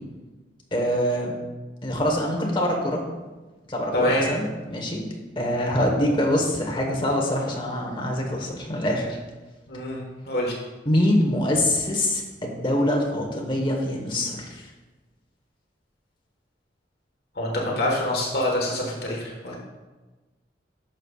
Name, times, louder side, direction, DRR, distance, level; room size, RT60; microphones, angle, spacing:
voice 1, 0.7-1.3 1.8-3.0 3.7-9.2 10.8-14.7, left 1 dB, 25° left, 0 dB, 1.2 m, -24 dB
voice 2, 3.9-4.2 9.7-10.5 17.4-19.6, left 1 dB, 60° left, -2 dB, 1.4 m, -25 dB
11.0 x 6.4 x 2.4 m, 1.2 s
head